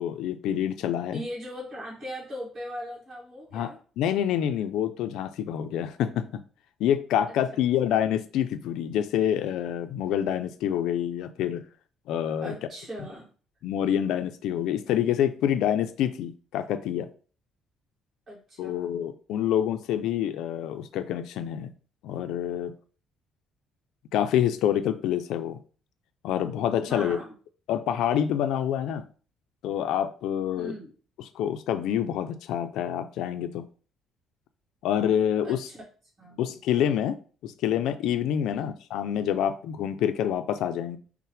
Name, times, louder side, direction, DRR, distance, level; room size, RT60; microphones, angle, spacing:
voice 1, 0.0-1.2 3.5-3.7 4.0-6.4 6.8-11.6 12.1-12.5 13.6-17.1 18.6-21.7 22.0-22.7 24.1-25.6 26.2-27.2 27.7-29.0 29.6-30.7 31.3-33.7 34.8-35.6 36.4-37.2 37.4-41.0, left 10 dB, 75° left, 0.3 m, -27 dB
voice 2, 1.1-3.8 7.5-7.6 12.4-13.3 18.3-18.9 26.8-27.4 30.6-30.9 35.4-35.8 36.2-36.4 38.5-38.8, equal, 30° right, 1.8 m, -39 dB
5.5 x 2.0 x 3.2 m
cardioid pair, 150°, 0 cm